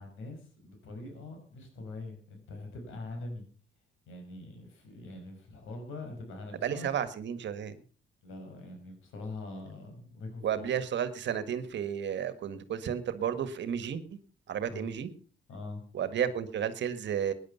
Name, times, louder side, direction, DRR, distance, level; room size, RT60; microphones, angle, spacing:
voice 1, 0.0-3.4 4.1-7.0 8.2-10.7 14.7-14.9 15.5-15.9, left 2 dB, 85° left, 5 dB, 5.8 m, -43 dB
voice 2, 6.6-7.7 10.4-14.2 14.5-15.1 15.9-17.3, right 8 dB, 65° right, 12 dB, 1.7 m, -32 dB
17.5 x 10.5 x 5.7 m, 0.42 s
cardioid pair, 90°, 20 cm